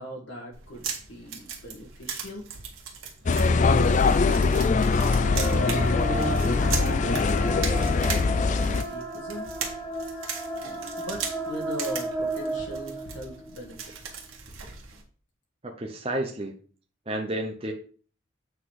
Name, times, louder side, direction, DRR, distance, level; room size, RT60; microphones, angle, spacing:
voice 1, 0.0-2.4 3.9-4.6 5.3-8.3 8.6-9.9 11.0-13.8 14.0-14.2, equal, 65° left, -1 dB, 1.5 m, -39 dB
sound 1, 0.5-15.0, right 6 dB, 90° right, 1.8 m, -38 dB
sound 2, 3.3-8.8, left 4 dB, 35° left, 0.4 m, -22 dB
sound 3, 4.4-13.5, right 1 dB, 5° left, 1.1 m, -34 dB
voice 2, 15.6-16.5 17.1-17.7, right 1 dB, 30° right, 2 dB, 0.8 m, -31 dB
8.2 x 3.9 x 4.8 m, 0.42 s
head